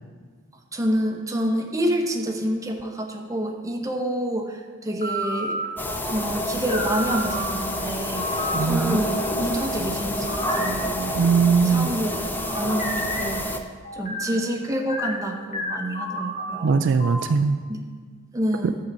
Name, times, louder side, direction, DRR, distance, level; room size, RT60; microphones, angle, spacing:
voice 1, 0.7-5.6 6.1-11.2 11.6-13.5 13.9-16.9 17.7-17.8 18.3-18.8, equal, 15° right, 1 dB, 0.9 m, -28 dB
sound 1, 4.9-7.5 8.2-8.6 9.0-9.6 10.3-11.5 12.0-17.2, equal, 35° left, 1.3 m, -32 dB
sound 2, 5.8-13.6, left 1 dB, 10° left, 0.5 m, -28 dB
voice 2, 8.5-9.0 11.2-11.9 16.6-17.6, right 5 dB, 65° right, 8 dB, 0.4 m, -20 dB
11.5 x 4.0 x 7.5 m, 1.5 s
head